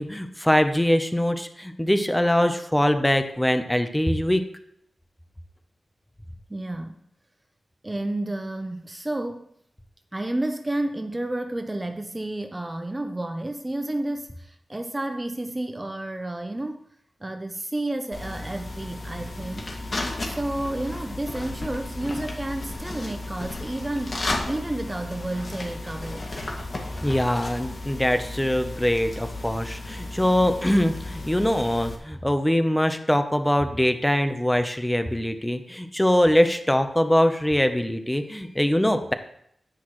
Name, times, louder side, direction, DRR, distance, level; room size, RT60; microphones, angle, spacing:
voice 1, 0.0-4.4 27.0-39.1, left 1 dB, 10° left, 8 dB, 0.8 m, -22 dB
voice 2, 6.5-7.0 7.8-9.5 10.1-16.8 17.2-19.7 20.2-26.5, right 1 dB, 20° right, 7 dB, 0.6 m, -31 dB
sound 1, 18.1-32.0, left 2 dB, 45° left, 2.0 m, -34 dB
10.0 x 9.6 x 3.2 m, 0.71 s
wide cardioid pair, 100°, 0 cm